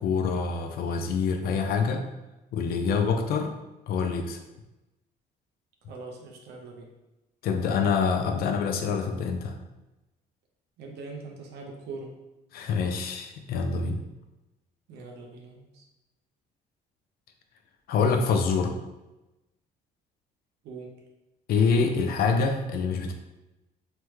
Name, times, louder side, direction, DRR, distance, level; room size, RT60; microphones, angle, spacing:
voice 1, 0.0-2.0 2.5-3.5 3.9-4.4 7.4-9.6 12.5-14.0 17.9-18.8 21.5-23.1, left 5 dB, 65° left, 5 dB, 0.4 m, -26 dB
voice 2, 5.9-6.9 10.8-12.2 14.9-15.8 20.6-21.0, right 3 dB, 80° right, 1 dB, 0.7 m, -42 dB
3.3 x 2.1 x 3.0 m, 1.0 s
cardioid pair, 110°, 17 cm